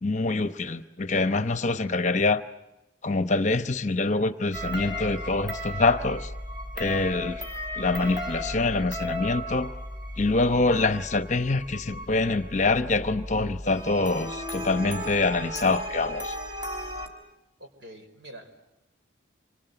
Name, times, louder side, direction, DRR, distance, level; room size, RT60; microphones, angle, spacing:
voice 1, 0.0-2.4 3.0-6.3 6.8-7.4 7.8-9.7 10.2-16.4, left 3 dB, 40° left, 10 dB, 0.9 m, -25 dB
sound 1, 4.5-17.1, equal, 25° right, 4.2 m, -35 dB
voice 2, 17.6-18.5, right 1 dB, 65° right, 6 dB, 4.8 m, -45 dB
27.5 x 25.5 x 8.0 m, 0.96 s
head